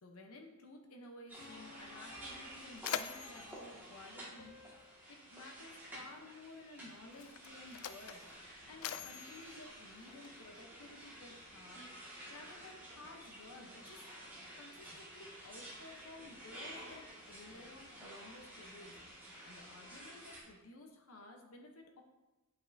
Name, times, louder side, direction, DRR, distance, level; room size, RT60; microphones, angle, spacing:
voice 1, 0.0-4.6 5.1-14.0 14.6-19.0 19.4-22.0, left 2 dB, 90° left, 2 dB, 0.9 m, -54 dB
sound 1, 1.3-20.4, right 1 dB, 10° right, 1.8 m, -52 dB
sound 2, 1.4-3.3 4.4-6.8, left 3 dB, 45° left, 0.9 m, -61 dB
Mechanisms, 1.9-2.0 2.3-5.1 6.1-6.2 7.0-10.6, left 10 dB, 75° left, 0.3 m, -45 dB
8.6 x 5.4 x 2.7 m, 1.1 s
head